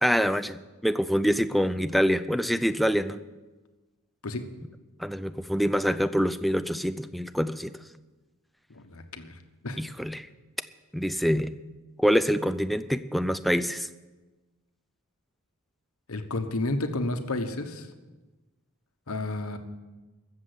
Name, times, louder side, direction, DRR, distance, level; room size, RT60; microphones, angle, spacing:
voice 1, 0.0-3.2 5.0-7.7 9.8-10.3 10.9-11.5 12.0-13.9, equal, ahead, 10 dB, 0.4 m, -25 dB
voice 2, 8.7-9.3 9.6-9.8 16.1-17.9 19.1-19.6, left 2 dB, 70° left, 7 dB, 1.2 m, -31 dB
14.5 x 7.4 x 8.3 m, 1.2 s
head